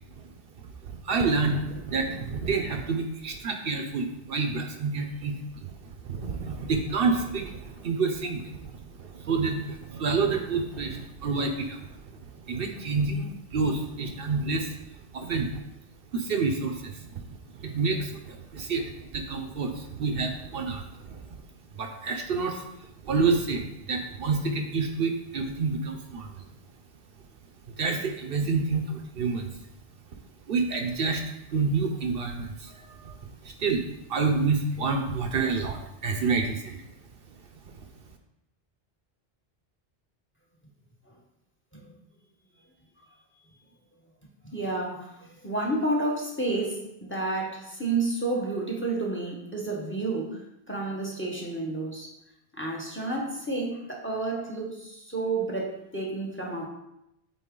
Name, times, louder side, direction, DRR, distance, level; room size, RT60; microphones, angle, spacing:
voice 1, 0.8-15.5 16.1-21.4 21.7-26.4 27.7-29.6 30.5-36.8 37.6-37.9, right 4 dB, 65° right, 5 dB, 0.9 m, -29 dB
voice 2, 44.4-52.1 52.5-56.7, right 2 dB, 10° left, -1 dB, 1.1 m, -30 dB
8.3 x 3.9 x 3.8 m, 0.84 s
omnidirectional pair, 1.0 m